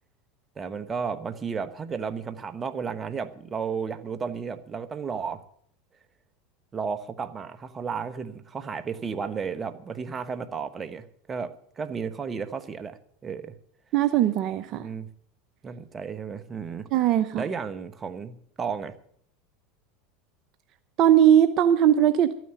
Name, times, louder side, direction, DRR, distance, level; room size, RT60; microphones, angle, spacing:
voice 1, 0.6-5.4 6.7-13.0 13.2-13.5 14.7-15.1 15.6-17.1 17.3-19.0, right 6 dB, 25° right, 11 dB, 1.2 m, -33 dB
voice 2, 13.9-14.9 16.9-17.4 21.0-22.3, right 10 dB, 50° right, 11 dB, 0.7 m, -19 dB
13.0 x 9.4 x 7.8 m, 0.64 s
hypercardioid pair, 95°, 0 cm